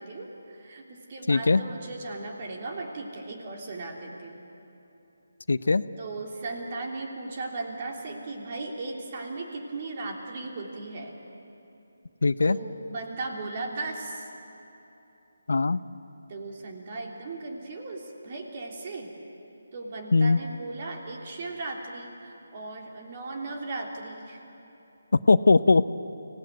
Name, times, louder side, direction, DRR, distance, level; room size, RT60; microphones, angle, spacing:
voice 1, 0.0-4.5 6.0-11.1 12.4-14.3 16.3-19.1 19.7-24.4, right 3 dB, 40° right, 1 dB, 3.2 m, -37 dB
voice 2, 1.3-1.6 5.5-5.8 12.2-12.6 15.5-15.8 20.1-20.4 25.3-25.9, left 3 dB, 75° left, 15 dB, 0.7 m, -20 dB
25.0 x 17.5 x 9.2 m, 2.9 s
figure-of-eight pair, 160°, 0 cm